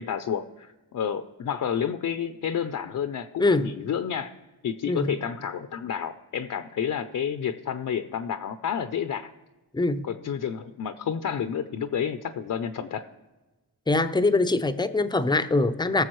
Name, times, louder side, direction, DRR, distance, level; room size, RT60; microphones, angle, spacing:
voice 1, 0.0-4.3 4.6-9.3 10.0-13.0, left 8 dB, 55° left, 9 dB, 0.6 m, -30 dB
voice 2, 3.4-3.7 4.9-5.1 9.7-10.0 13.9-16.0, left 2 dB, 10° left, 13 dB, 0.5 m, -23 dB
19.0 x 7.0 x 3.1 m, 1.1 s
cardioid pair, 95°, 38 cm